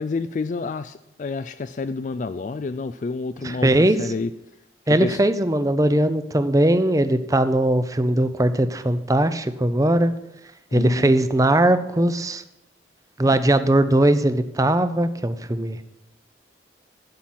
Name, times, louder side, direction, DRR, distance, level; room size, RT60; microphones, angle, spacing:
voice 1, 0.0-4.3 5.0-5.2 10.7-11.1 13.3-13.4, left 3 dB, 40° left, 11 dB, 0.3 m, -29 dB
voice 2, 3.4-4.1 4.9-10.1 10.7-12.4 13.2-15.8, right 1 dB, 20° right, 11 dB, 0.6 m, -20 dB
11.5 x 6.0 x 8.9 m, 0.89 s
head